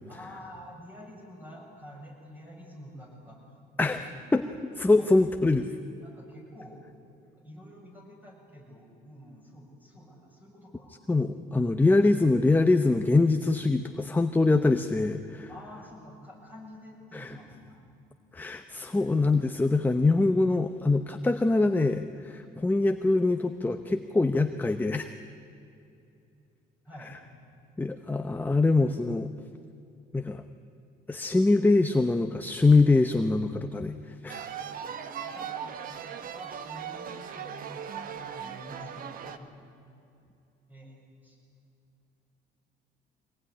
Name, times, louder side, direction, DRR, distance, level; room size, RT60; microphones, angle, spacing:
voice 1, 0.1-4.1 4.4-4.6 5.0-5.4 6.0-6.8 7.4-11.0 15.5-17.8 18.8-19.1 26.8-27.2 35.2-39.5 40.7-41.4, equal, 10° right, -1 dB, 7.9 m, -48 dB
voice 2, 4.8-5.7 11.1-15.5 17.1-17.3 18.3-25.1 27.8-29.3 30.1-30.4 31.1-33.9 34.2-34.5, left 3 dB, 10° left, 8 dB, 0.9 m, -24 dB
sound 1, 34.3-39.4, right 8 dB, 55° right, 1.5 m, -38 dB
23.5 x 19.0 x 10.0 m, 2.6 s
cardioid pair, 110°, 17 cm